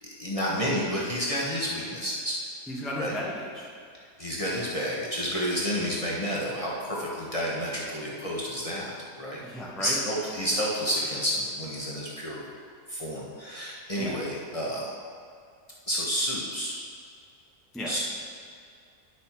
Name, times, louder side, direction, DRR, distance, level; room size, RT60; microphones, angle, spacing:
voice 1, 0.0-2.4 3.0-3.1 4.2-9.4 9.8-12.4 12.9-14.9 15.9-16.8 17.9-18.0, equal, 25° left, -5 dB, 1.1 m, -30 dB
voice 2, 2.7-3.7 9.4-10.0 14.0-14.2 17.7-18.0, left 1 dB, ahead, -4 dB, 0.8 m, -35 dB
10.0 x 6.4 x 4.4 m, 2.3 s
omnidirectional pair, 1.7 m